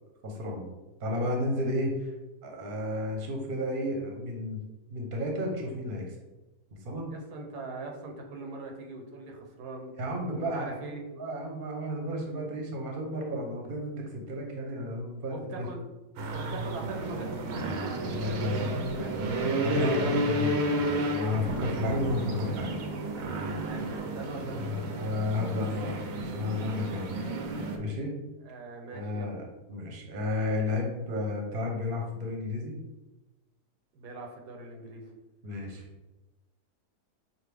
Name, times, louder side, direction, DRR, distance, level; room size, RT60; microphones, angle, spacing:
voice 1, 0.2-0.7 1.0-2.1 2.4-4.6 4.9-6.1 6.8-7.1 10.0-15.7 18.0-18.7 19.6-22.8 24.6-27.1 27.8-28.1 28.9-29.4 29.7-32.7 35.4-35.8, left 2 dB, 40° right, 1 dB, 0.9 m, -32 dB
voice 2, 7.1-9.9 10.3-11.0 15.3-15.8 16.3-19.1 23.6-24.6 28.4-29.4 33.9-35.1, right 3 dB, 85° right, 2 dB, 1.3 m, -42 dB
sound 1, 16.2-27.8, right 1 dB, 65° right, 1.0 m, -32 dB
sound 2, 18.6-20.5 21.3-23.2 23.6-23.7 24.1-24.2, left 2 dB, 45° left, 0.7 m, -43 dB
5.8 x 2.6 x 3.4 m, 1.1 s
omnidirectional pair, 1.7 m